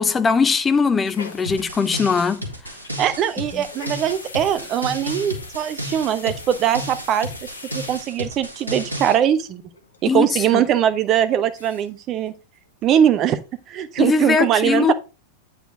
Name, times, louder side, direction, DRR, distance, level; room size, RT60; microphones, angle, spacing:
voice 1, 0.0-2.4 3.5-3.6 10.1-10.6 14.0-14.9, left 5 dB, 15° left, 0.6 m, -20 dB
sound 1, 1.0-8.6 9.0-9.1 9.3-9.4 9.7-10.1 10.4-10.5 11.1-11.2 11.4-12.0 12.3-12.4 12.7-13.2 13.6-13.7, left 4 dB, 70° left, 1.1 m, -43 dB
sound 2, 1.5-9.2, equal, 80° right, 1.8 m, -33 dB
voice 2, 3.0-7.3 7.7-9.6 10.0-12.3 12.8-13.4 13.7-14.9, right 10 dB, 35° right, 0.8 m, -21 dB
9.0 x 4.4 x 4.7 m
figure-of-eight pair, 90°, 0 cm